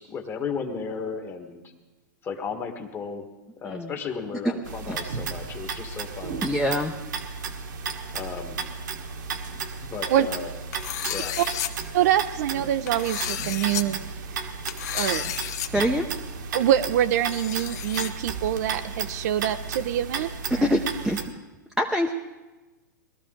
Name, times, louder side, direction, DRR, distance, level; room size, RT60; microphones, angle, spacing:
voice 1, 0.0-1.6 2.2-3.3 3.6-6.4 8.1-8.6 9.9-10.5 11.1-11.4, left 5 dB, 20° left, 5 dB, 1.5 m, -34 dB
sound 1, 4.6-21.2, right 5 dB, 75° right, 1.5 m, -34 dB
voice 2, 6.4-6.9 15.7-16.1 20.5-21.2 21.8-22.1, equal, ahead, 0 dB, 0.7 m, -24 dB
sound 2, 10.7-11.7 12.9-13.8 14.7-15.7 16.0-16.1 17.1-18.1, left 11 dB, 60° left, 1.0 m, -32 dB
voice 3, 11.9-14.0 14.9-15.3 16.5-20.3 20.6-20.7, right 11 dB, 60° right, 11 dB, 0.6 m, -25 dB
20.5 x 13.0 x 3.8 m, 1.2 s
hypercardioid pair, 135°, 10 cm